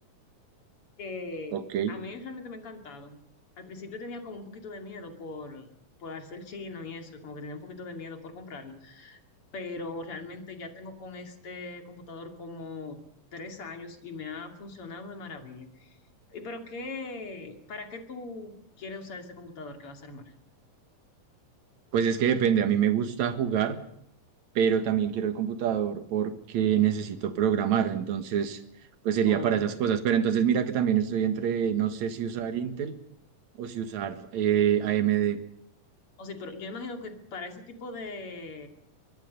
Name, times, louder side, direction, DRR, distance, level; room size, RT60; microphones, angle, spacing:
voice 1, 1.0-1.6 1.9-3.2 3.6-5.7 6.0-9.2 9.5-13.0 13.3-16.0 16.3-20.2 29.3-29.6 36.2-38.7, left 3 dB, 45° left, 4 dB, 3.3 m, -40 dB
voice 2, 1.5-1.9 21.9-23.8 24.6-28.6 29.0-32.9 33.6-35.4, right 9 dB, 60° right, 8 dB, 2.8 m, -26 dB
23.0 x 22.5 x 5.4 m, 0.71 s
omnidirectional pair, 3.9 m